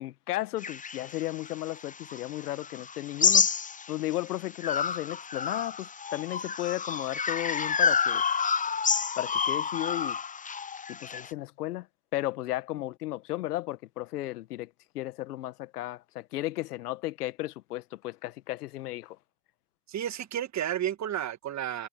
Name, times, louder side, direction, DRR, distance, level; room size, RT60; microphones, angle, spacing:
voice 1, 0.0-3.5 3.9-8.2 9.2-10.2 10.9-11.9 12.1-14.7 14.9-19.2, left 16 dB, 80° left, 1.6 m, -34 dB
sound 1, 0.6-4.2 4.6-11.3, left 6 dB, 15° left, 0.9 m, -29 dB
voice 2, 19.9-21.9, right 10 dB, 35° right, 1.9 m, -32 dB
hypercardioid pair, 80°, 45 cm